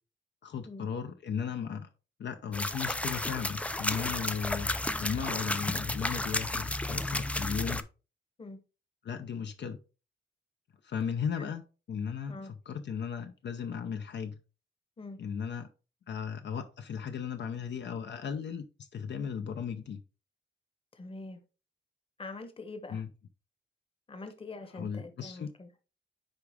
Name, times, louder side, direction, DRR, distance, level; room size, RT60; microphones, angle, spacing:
voice 1, 0.4-1.9 2.2-4.7 5.0-7.9 9.0-9.8 10.8-11.6 11.9-14.4 15.2-15.7 16.1-20.0 22.9-23.1 24.7-25.5, left 7 dB, 65° left, 0.6 m, -36 dB
sound 1, 2.5-7.8, left 1 dB, 5° left, 0.3 m, -32 dB
voice 2, 20.9-21.4 22.2-23.0 24.1-25.7, left 3 dB, 30° left, 1.0 m, -44 dB
9.8 x 3.6 x 3.4 m
wide cardioid pair, 170°, 20 cm